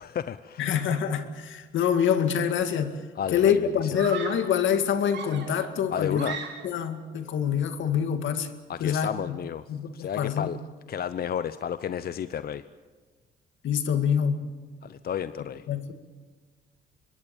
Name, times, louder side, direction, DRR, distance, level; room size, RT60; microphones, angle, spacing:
voice 1, 0.0-0.7 3.2-4.0 5.9-6.4 8.7-9.6 9.9-10.6 10.9-12.6 14.8-15.7, left 8 dB, 50° left, 13 dB, 0.7 m, -32 dB
voice 2, 0.6-2.9 3.3-6.3 6.6-8.5 8.8-9.4 9.7-10.5 13.6-14.4 15.7-15.9, left 8 dB, 75° left, 8 dB, 2.1 m, -26 dB
Screaming, 2.6-2.9 3.9-4.6 5.1-6.9, right 6 dB, 65° right, 3.6 m, -38 dB
25.0 x 22.5 x 7.1 m, 1.4 s
cardioid pair, 90°, 20 cm